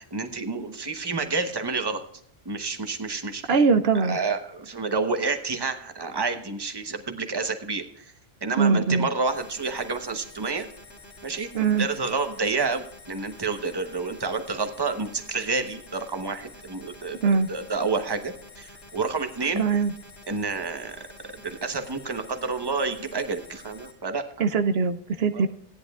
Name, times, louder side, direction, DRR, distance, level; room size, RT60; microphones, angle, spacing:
voice 1, 0.1-2.0 2.4-3.4 3.9-8.1 8.4-10.7 11.2-11.5 11.8-17.2 17.5-19.6 20.3-21.0 21.4-24.4 25.3-25.4, right 4 dB, 25° right, 7 dB, 1.0 m, -29 dB
voice 2, 3.5-4.2 8.6-9.1 11.5-11.9 17.2-17.5 19.6-19.9 24.4-25.5, right 5 dB, 75° right, 10 dB, 0.9 m, -21 dB
sound 1, 9.3-23.9, left 2 dB, 75° left, 1.9 m, -48 dB
17.0 x 10.5 x 2.4 m, 0.65 s
omnidirectional pair, 1.1 m